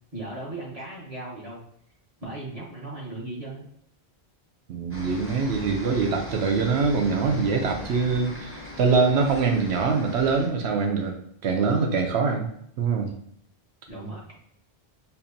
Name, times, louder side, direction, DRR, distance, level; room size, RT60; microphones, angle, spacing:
voice 1, 0.1-1.6 2.2-3.6 13.9-14.4, right 2 dB, 35° right, -6 dB, 1.3 m, -37 dB
voice 2, 4.7-11.2 11.4-12.5 12.8-13.1, right 4 dB, 80° right, 4 dB, 0.9 m, -24 dB
sound 1, 4.9-10.5, left 1 dB, 15° right, 0.8 m, -40 dB
4.3 x 2.7 x 2.6 m, 0.70 s
omnidirectional pair, 1.1 m